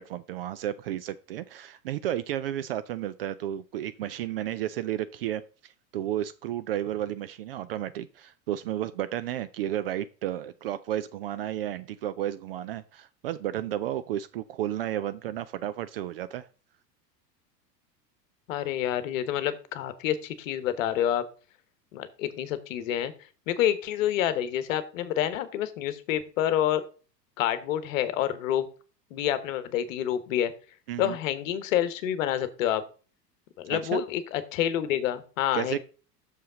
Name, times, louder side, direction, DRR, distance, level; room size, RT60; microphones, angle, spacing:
voice 1, 0.0-16.4 30.9-31.2 33.7-34.0 35.5-35.8, right 12 dB, 40° right, 13 dB, 0.4 m, -32 dB
voice 2, 18.5-21.2 21.9-23.1 23.5-26.8 27.4-28.7 29.1-30.5 31.0-32.8 33.6-35.8, left 11 dB, 50° left, 13 dB, 1.2 m, -28 dB
6.6 x 5.5 x 5.0 m, 0.36 s
figure-of-eight pair, 85°, 50 cm